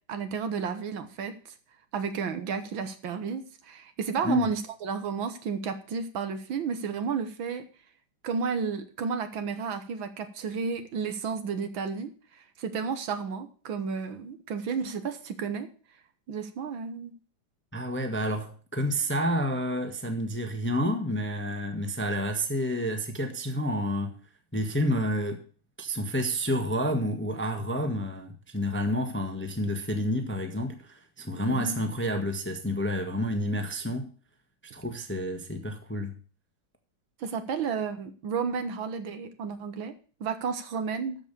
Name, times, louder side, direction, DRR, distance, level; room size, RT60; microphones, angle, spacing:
voice 1, 0.1-1.3 1.9-7.7 8.2-12.1 12.4-15.7 16.3-17.1 31.4-31.7 37.2-39.9 40.2-41.2, right 5 dB, 65° right, 1.8 m, -32 dB
voice 2, 17.7-24.1 24.5-25.4 25.8-34.1 34.7-36.1, equal, 5° left, 1.0 m, -29 dB
13.5 x 5.4 x 6.8 m
omnidirectional pair, 2.4 m